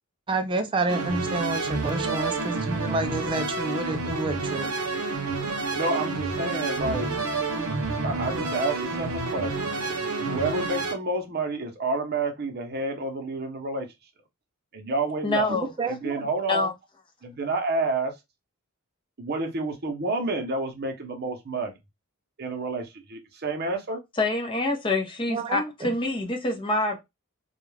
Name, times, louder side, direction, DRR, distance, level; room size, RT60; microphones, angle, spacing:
voice 1, 0.3-4.7 15.5-16.2 25.3-25.9, right 3 dB, 25° right, 0.3 m, -29 dB
sound 1, 0.9-11.0, right 3 dB, 90° right, 0.7 m, -29 dB
voice 2, 5.7-7.1 8.0-13.9 14.7-15.5 15.9-16.7 17.2-18.1 19.2-21.8 22.4-24.0, right 2 dB, 45° right, 0.7 m, -29 dB
voice 3, 15.2-15.7 16.5-16.7 24.2-27.0, left 2 dB, 25° left, 0.6 m, -26 dB
2.3 x 2.2 x 3.2 m
head